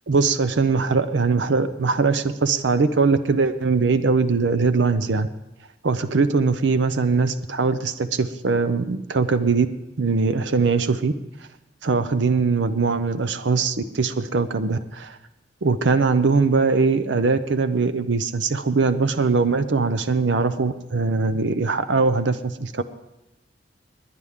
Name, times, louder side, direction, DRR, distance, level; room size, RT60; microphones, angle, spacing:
voice 1, 0.1-5.3 5.8-9.7 10.0-11.1 11.8-15.2 15.6-22.8, right 4 dB, 80° right, 11 dB, 0.6 m, -21 dB
20.5 x 9.9 x 3.6 m, 0.96 s
head